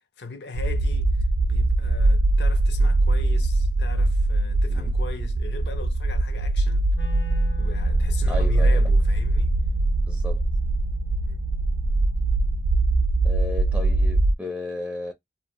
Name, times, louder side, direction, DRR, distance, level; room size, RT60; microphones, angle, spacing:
voice 1, 0.2-1.1 1.4-6.9 7.6-9.6 11.2-11.4, left 3 dB, 65° left, 0.5 m, -39 dB
sound 1, 0.5-14.3, right 2 dB, 85° right, 0.4 m, -22 dB
Wind instrument woodwind instrument, 6.9-13.0, left 4 dB, 90° left, 0.9 m, -47 dB
voice 2, 8.3-8.8 10.0-10.4 13.2-15.1, left 2 dB, 10° right, 0.4 m, -34 dB
2.6 x 2.0 x 2.9 m
head